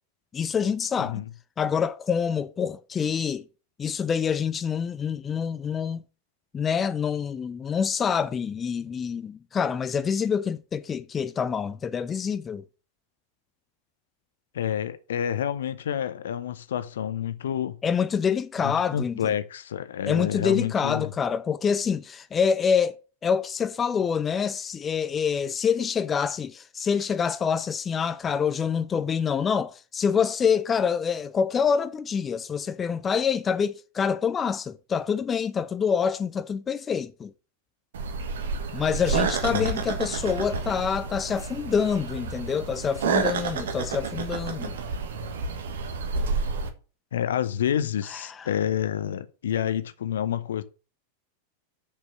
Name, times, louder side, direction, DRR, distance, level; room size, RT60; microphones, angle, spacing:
voice 1, 0.3-1.2 1.6-3.5 3.8-6.0 6.5-12.6 17.8-19.3 20.0-37.3 38.7-44.7 48.1-48.5, left 6 dB, 20° left, 0.5 m, -26 dB
voice 2, 14.5-17.8 18.6-21.1 39.5-39.7 47.1-50.6, left 9 dB, 60° left, 0.8 m, -28 dB
sound 1, 37.9-46.7, right 5 dB, 60° right, 1.5 m, -30 dB
6.8 x 6.7 x 6.1 m
figure-of-eight pair, 90°, 0 cm